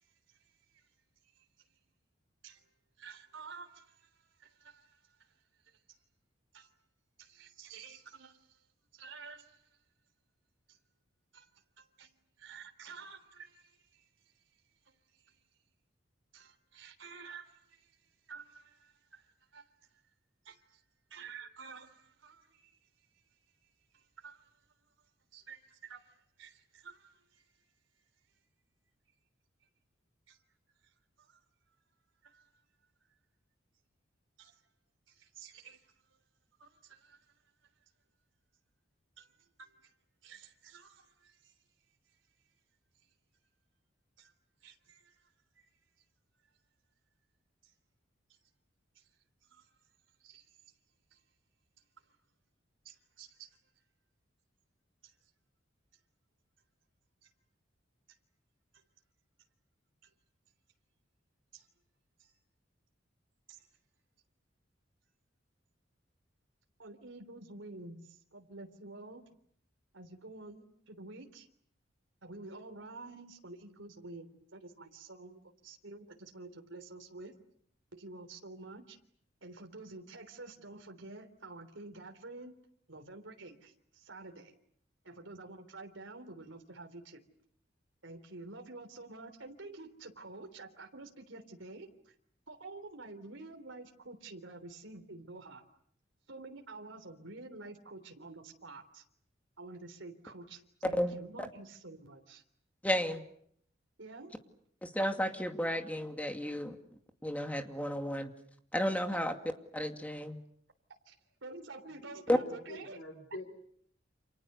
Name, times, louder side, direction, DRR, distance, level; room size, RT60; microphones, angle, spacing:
voice 1, 3.0-4.1 4.4-5.1 6.5-6.7 7.2-8.6 8.9-9.7 10.7-10.8 11.3-11.5 11.8-12.1 12.4-14.0 14.9-15.0 15.3-15.4 16.3-17.9 18.3-19.7 20.4-20.8 21.1-22.8 23.9-24.6 25.3-27.5 30.3-30.4 31.2-31.4 32.2-32.5 34.4-34.6 35.1-35.8 36.6-37.3 39.2-39.3 39.6-39.9 40.2-41.5 44.2-44.3 44.6-45.2 45.6-45.7 47.6-47.7 48.9-49.0 49.5-49.6 50.2-50.4 52.8-53.5 55.0-55.1 57.2-57.3 61.5-61.7 62.2-62.3 63.5-63.7 66.8-69.2 69.9-71.5 72.2-77.3 77.9-79.0 79.4-82.6 82.9-84.5 85.0-87.2 88.0-92.1 92.5-95.6 96.3-99.0 99.6-102.4 104.0-104.4 111.0-111.1 111.4-113.0, right 3 dB, 85° right, 3.4 m, -50 dB
voice 2, 102.8-103.2 104.8-106.8 107.2-108.3 108.7-109.3 109.7-110.4 112.3-112.4, equal, 10° left, 2.4 m, -32 dB
voice 3, 111.9-113.4, left 1 dB, 80° left, 4.4 m, -46 dB
29.5 x 27.5 x 6.8 m
head